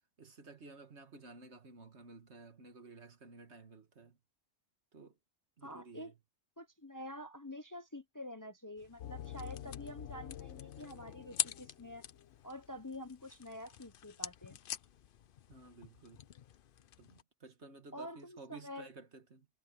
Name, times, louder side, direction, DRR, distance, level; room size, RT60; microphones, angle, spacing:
voice 1, 0.2-4.2 4.9-5.2 5.6-6.2 15.5-16.3 17.0-19.5, right 3 dB, 70° right, 2.1 m, -54 dB
voice 2, 5.6-6.1 6.6-12.0 12.4-14.6 17.9-18.9, left 1 dB, 20° left, 0.7 m, -47 dB
sound 1, 8.8-17.2, left 9 dB, 55° left, 0.7 m, -45 dB
sound 2, 9.0-12.4, left 11 dB, 85° left, 1.1 m, -48 dB
omnidirectional pair, 1.2 m